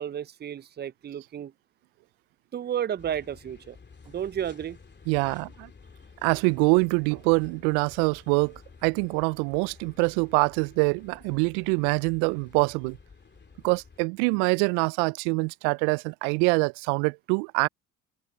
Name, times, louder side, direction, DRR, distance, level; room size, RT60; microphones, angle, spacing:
voice 1, 0.0-1.5 2.5-3.8 4.1-4.8, right 9 dB, 25° right, 0.6 m, -32 dB
sound 1, 3.0-14.0, left 5 dB, 25° left, 2.8 m, -52 dB
voice 2, 5.1-5.7 6.2-13.0 13.6-17.7, right 35 dB, 65° right, 0.7 m, -25 dB
hypercardioid pair, 60°, 41 cm